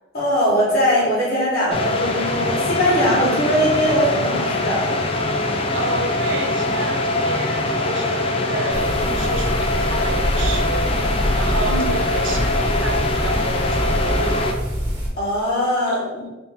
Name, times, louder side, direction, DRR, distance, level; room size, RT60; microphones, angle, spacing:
voice 1, 0.1-4.9 11.6-11.9 15.2-16.2, equal, 50° left, -5 dB, 1.4 m, -21 dB
sound 1, 1.7-14.5, left 2 dB, 30° left, 0.3 m, -23 dB
voice 2, 5.7-14.6 15.9-16.3, right 2 dB, 70° right, 4 dB, 0.5 m, -31 dB
sound 2, 8.7-15.1, equal, 25° right, 1.4 m, -25 dB
4.1 x 2.8 x 3.5 m, 1.1 s
head